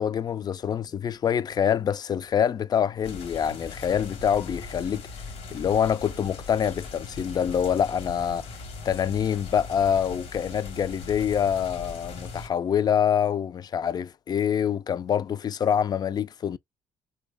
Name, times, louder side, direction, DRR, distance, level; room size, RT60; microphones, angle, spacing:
voice 1, 0.0-5.0 5.5-8.5 8.8-16.6, left 8 dB, 40° left, 0.3 m, -25 dB
sound 1, 3.0-12.5, left 4 dB, 75° left, 1.0 m, -40 dB
3.3 x 2.2 x 3.2 m
supercardioid pair, 70°, 11 cm